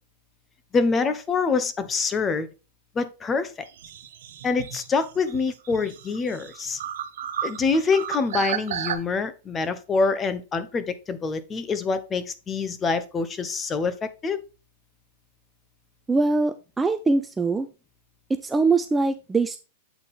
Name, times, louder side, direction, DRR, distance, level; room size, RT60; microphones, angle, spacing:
voice 1, 0.7-2.5 2.9-3.5 4.4-6.8 7.4-14.4, left 4 dB, 20° left, 0.8 m, -25 dB
sound 1, 3.7-9.0, right 9 dB, 75° right, 1.1 m, -33 dB
voice 2, 16.1-17.7 18.3-19.6, right 3 dB, 10° right, 0.4 m, -22 dB
8.1 x 4.2 x 3.5 m
supercardioid pair, 145°, 0 cm